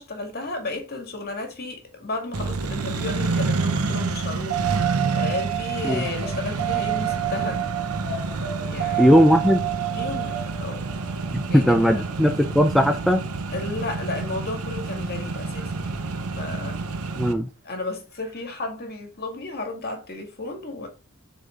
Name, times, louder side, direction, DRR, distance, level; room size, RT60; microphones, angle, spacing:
voice 1, 0.0-7.7 8.6-9.2 9.9-10.8 11.5-12.0 13.5-16.8 17.7-20.9, left 2 dB, 45° left, 1.9 m, -33 dB
Accelerating revving vroom, 2.3-17.3, right 3 dB, 80° right, 0.8 m, -29 dB
sound 1, 4.5-12.9 15.6-15.7, right 13 dB, 55° right, 1.7 m, -29 dB
voice 2, 9.0-9.6 11.3-13.2 17.2-17.5, equal, ahead, 0.4 m, -18 dB
6.6 x 4.1 x 3.8 m
head